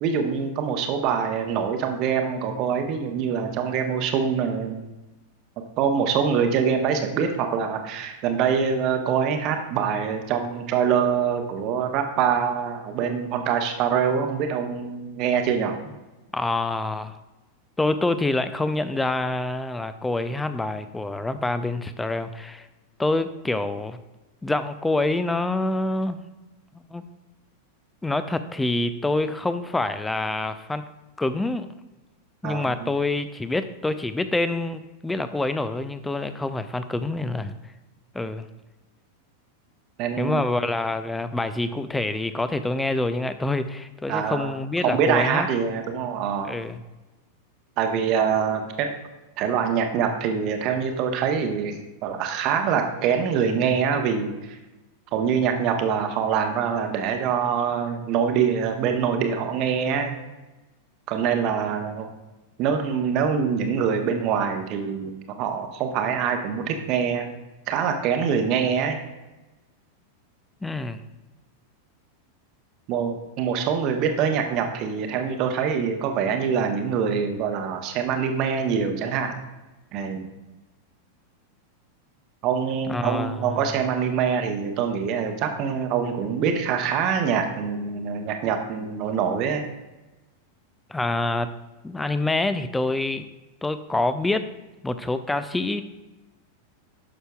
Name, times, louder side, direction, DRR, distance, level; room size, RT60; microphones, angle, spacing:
voice 1, 0.0-4.9 5.8-15.7 32.4-32.7 40.0-40.4 44.1-44.5 44.8-46.5 47.8-48.9 49.4-54.6 55.1-60.2 61.1-62.1 62.6-67.3 67.7-69.0 72.9-79.4 79.9-80.3 82.4-89.6, right 7 dB, 40° right, 5 dB, 1.0 m, -24 dB
voice 2, 16.3-17.2 17.8-22.7 23.0-24.0 24.4-26.2 26.9-27.0 28.0-30.8 31.2-31.7 32.4-37.6 38.1-38.5 40.2-45.5 46.4-46.8 70.6-71.0 82.9-83.6 90.9-91.5 91.8-93.3 93.6-94.5 94.8-95.8, left 2 dB, 10° left, 11 dB, 0.5 m, -26 dB
11.0 x 6.5 x 2.3 m, 1.1 s
figure-of-eight pair, 90°, 0 cm